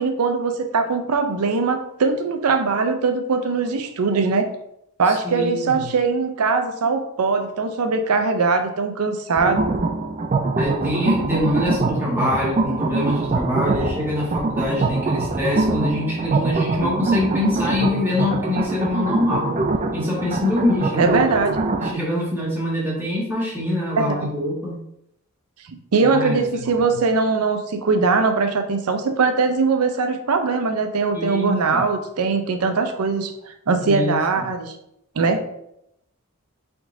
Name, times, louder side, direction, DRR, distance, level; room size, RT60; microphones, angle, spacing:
voice 1, 0.0-4.5 5.0-9.7 21.0-21.6 24.0-24.3 25.7-34.8 35.2-35.5, right 4 dB, 85° right, 6 dB, 0.5 m, -21 dB
voice 2, 5.2-5.8 10.6-19.5 19.9-21.1 21.8-24.8 26.1-26.4 31.1-31.8 33.9-34.2, left 1 dB, 10° right, -6 dB, 1.5 m, -24 dB
sound 1, 9.4-21.9, right 3 dB, 30° right, 0.3 m, -23 dB
4.7 x 3.7 x 2.6 m, 0.78 s
head